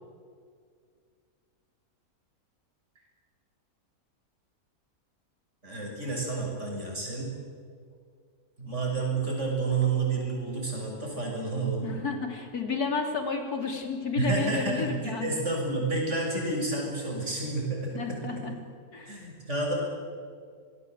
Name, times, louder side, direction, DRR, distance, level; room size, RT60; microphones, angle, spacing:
voice 1, 5.6-7.3 8.6-11.9 14.1-18.2 19.1-19.7, right 3 dB, 50° right, -1 dB, 6.9 m, -30 dB
voice 2, 11.8-15.4 17.9-18.5 18.9-19.2, left 4 dB, 85° left, 4 dB, 3.7 m, -32 dB
26.5 x 20.0 x 8.1 m, 2.1 s
omnidirectional pair, 1.6 m